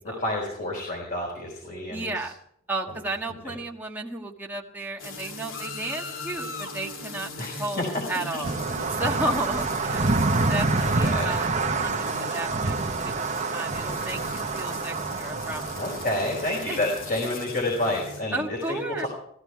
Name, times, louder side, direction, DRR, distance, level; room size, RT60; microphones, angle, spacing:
voice 1, 0.0-2.3 3.4-3.5 7.4-8.0 10.8-11.3 15.7-19.1, left 1 dB, 45° left, -2 dB, 4.7 m, -29 dB
voice 2, 1.9-2.3 2.7-8.5 9.0-10.1 10.5-11.5 11.8-15.8 16.7-16.8 18.3-19.1, right 2 dB, 10° right, -1 dB, 1.6 m, -33 dB
sound 1, 5.0-18.2, left 2 dB, 80° left, 2.3 m, -39 dB
sound 2, 8.4-17.2, right 3 dB, 35° right, 1.0 m, -27 dB
16.0 x 16.0 x 4.7 m, 0.67 s
head